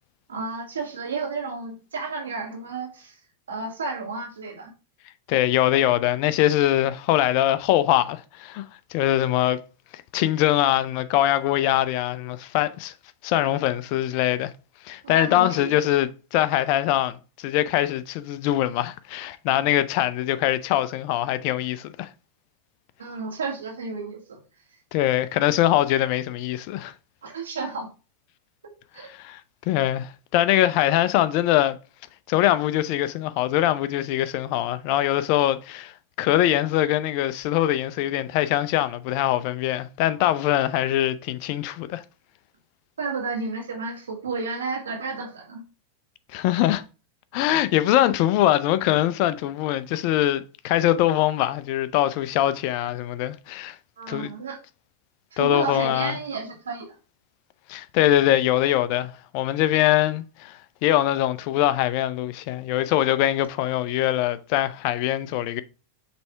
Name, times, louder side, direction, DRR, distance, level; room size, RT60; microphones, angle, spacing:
voice 1, 0.3-3.2 3.5-4.7 15.0-15.8 23.0-24.4 27.2-27.9 28.6-29.1 43.0-45.6 54.0-54.6 55.3-57.0, right 4 dB, 85° right, 2.0 m, -32 dB
voice 2, 5.3-8.6 8.9-9.6 10.1-12.9 13.2-14.5 14.8-22.1 24.9-26.9 29.1-29.4 29.7-31.8 32.3-35.9 36.2-42.0 46.3-46.8 47.3-53.8 54.1-54.3 55.4-56.2 57.7-65.6, left 13 dB, 55° left, 0.6 m, -23 dB
6.8 x 3.4 x 4.5 m
hypercardioid pair, 100°, 0 cm